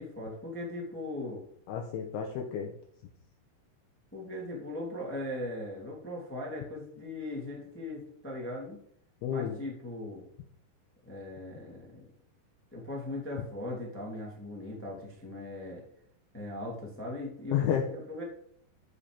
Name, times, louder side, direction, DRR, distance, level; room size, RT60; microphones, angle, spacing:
voice 1, 0.0-1.4 4.1-8.8 9.3-10.2 11.0-12.1 12.7-15.8 16.3-18.2, left 1 dB, 5° left, -2 dB, 1.0 m, -39 dB
voice 2, 1.7-2.7 9.2-9.6 17.5-17.9, left 8 dB, 75° left, 2 dB, 2.5 m, -31 dB
12.5 x 5.0 x 5.2 m, 0.64 s
omnidirectional pair, 5.4 m